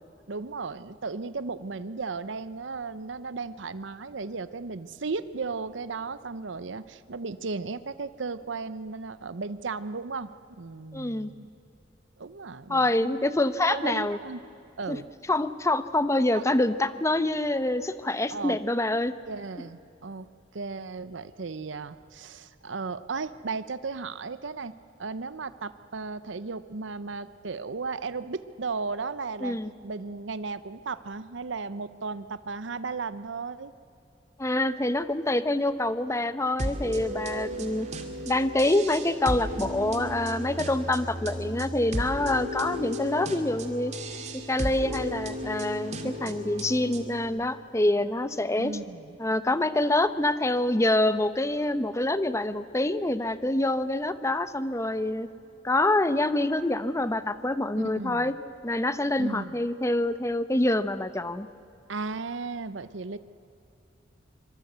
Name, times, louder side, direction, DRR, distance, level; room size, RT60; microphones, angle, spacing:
voice 1, 0.3-11.5 12.2-13.2 13.7-14.4 14.8-15.1 16.3-16.4 18.3-18.6 19.3-20.3 20.5-24.7 25.0-29.6 29.8-33.7 37.5-37.7 46.0-46.4 48.6-49.2 57.8-58.3 59.2-59.6 61.9-63.2, right 4 dB, 85° right, 14 dB, 0.8 m, -35 dB
voice 2, 10.9-11.3 12.7-14.2 14.9-15.0 15.3-19.1 29.4-29.7 34.4-37.9 38.2-43.9 44.5-48.8 49.2-55.3 55.6-58.3 58.6-61.5, left 1 dB, 15° left, 12 dB, 0.9 m, -26 dB
sound 1, 36.6-47.3, equal, 40° right, 2.3 m, -34 dB
25.0 x 23.5 x 8.1 m, 2.8 s
head